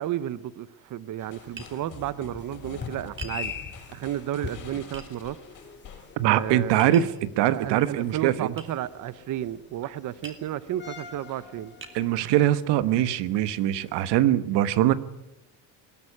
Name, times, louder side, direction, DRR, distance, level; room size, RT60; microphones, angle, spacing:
voice 1, 0.0-3.5 3.9-5.4 6.3-7.0 7.5-11.7, right 12 dB, 45° right, 0.9 m, -32 dB
sound 1, 1.2-14.0, left 6 dB, 25° left, 2.5 m, -44 dB
sound 2, 1.3-6.6, left 6 dB, 50° left, 7.2 m, -47 dB
Tap, 1.6-1.8 3.2-3.4 4.9-5.1 6.8-7.2 8.6-8.7 10.2-10.5 11.2-11.3 11.8-12.0, right 4 dB, 30° right, 3.1 m, -42 dB
voice 2, 6.2-8.5 11.9-14.9, right 12 dB, 80° right, 1.3 m, -22 dB
21.0 x 17.0 x 9.9 m
cardioid pair, 150°, 41 cm